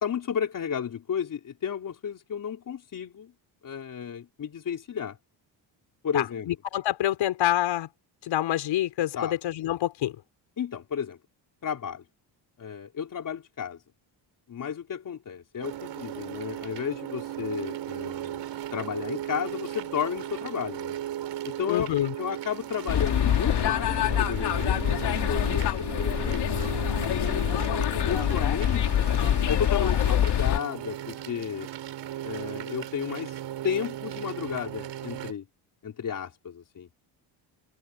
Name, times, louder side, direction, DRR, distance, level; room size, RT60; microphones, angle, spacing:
voice 1, 0.0-3.3 3.6-5.2 6.0-6.5 9.1-9.4 10.6-11.2 11.6-12.0 12.6-13.8 14.5-18.5 18.7-21.0 21.4-26.5 27.0-27.7 28.0-29.1 29.5-31.7 32.2-33.4 33.6-35.5 35.8-36.9, left 8 dB, 45° left, 4.1 m, -33 dB
voice 2, 6.1-7.9 8.3-10.1 21.7-22.1, left 13 dB, 85° left, 5.3 m, -27 dB
sound 1, 15.6-35.3, right 12 dB, 65° right, 6.3 m, -37 dB
sound 2, 22.9-30.6, left 10 dB, 60° left, 3.0 m, -25 dB
cardioid pair, 155°, 45 cm